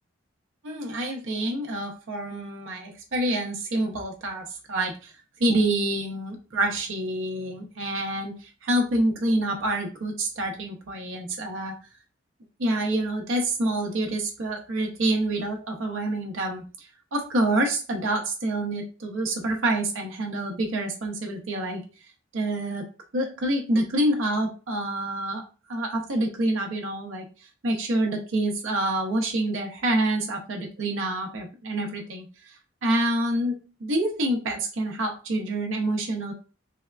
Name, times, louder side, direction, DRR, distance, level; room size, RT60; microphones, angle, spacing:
voice 1, 0.6-5.1 5.4-11.7 12.6-21.8 22.3-22.8 23.1-25.4 25.7-27.2 27.6-32.5 32.8-36.3, right 1 dB, 85° right, 1 dB, 0.6 m, -27 dB
3.4 x 2.2 x 2.3 m, 0.34 s
head